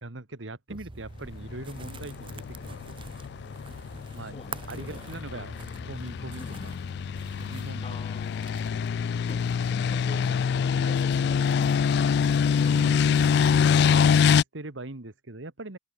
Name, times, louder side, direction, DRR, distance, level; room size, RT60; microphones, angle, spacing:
voice 1, 0.0-3.0 4.1-4.4 4.7-5.6 5.9-6.7 7.4-8.0 10.1-10.2 12.7-13.4 14.3-15.8, right 2 dB, 85° right, 1.8 m, -41 dB
sound 1, 0.7-13.9, right 3 dB, 25° right, 0.7 m, -46 dB
sound 2, 1.5-14.4, left 6 dB, 60° left, 0.3 m, -25 dB
voice 2, 4.3-5.8 6.1-6.8 7.8-8.9 9.3-11.9, left 2 dB, 30° left, 0.8 m, -46 dB
head